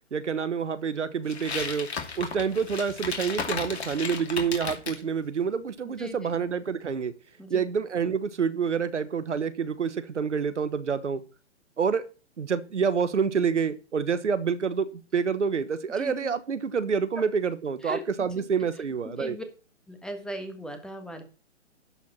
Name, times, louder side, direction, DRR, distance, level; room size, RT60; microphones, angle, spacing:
voice 1, 0.1-1.9 2.2-7.1 7.5-11.2 11.8-12.0 12.4-14.8 15.1-19.4, right 6 dB, 80° right, 1.2 m, -27 dB
sound 1, 1.3-5.0, left 5 dB, 65° left, 2.7 m, -34 dB
voice 2, 6.0-6.3 7.4-7.6 16.0-16.3 17.8-18.0 19.2-19.4 19.9-21.2, equal, ahead, 1.4 m, -38 dB
11.5 x 4.7 x 7.1 m
figure-of-eight pair, 130°, 35 cm